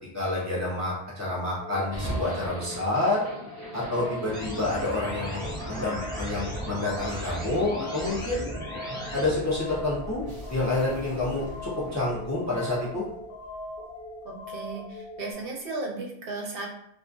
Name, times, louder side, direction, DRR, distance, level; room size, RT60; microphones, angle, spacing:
voice 1, 0.1-3.2 3.7-8.4 9.1-13.0, left 2 dB, 25° left, -5 dB, 0.3 m, -28 dB
sound 1, 1.6-15.3, left 1 dB, 75° left, 0.8 m, -40 dB
sound 2, 1.9-14.1, right 1 dB, 25° right, 0.5 m, -41 dB
sound 3, 4.3-9.3, equal, 5° left, 0.7 m, -36 dB
voice 2, 14.2-16.7, right 3 dB, 60° right, 0 dB, 0.7 m, -35 dB
2.3 x 2.3 x 2.5 m, 0.71 s
omnidirectional pair, 1.2 m